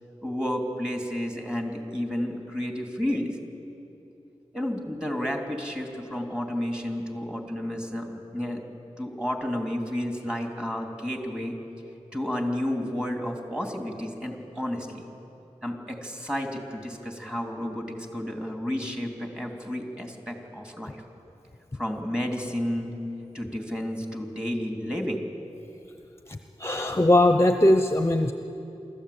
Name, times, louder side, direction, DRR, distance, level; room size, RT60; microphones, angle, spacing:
voice 1, 0.2-3.3 4.5-8.6 9.0-11.5 12.1-15.1 15.6-21.0 21.7-23.0 23.3-25.2, left 1 dB, 5° right, 2 dB, 3.2 m, -31 dB
voice 2, 26.6-28.3, left 1 dB, 20° left, 7 dB, 0.8 m, -20 dB
24.5 x 14.5 x 8.7 m, 2.8 s
wide cardioid pair, 60°, 12 cm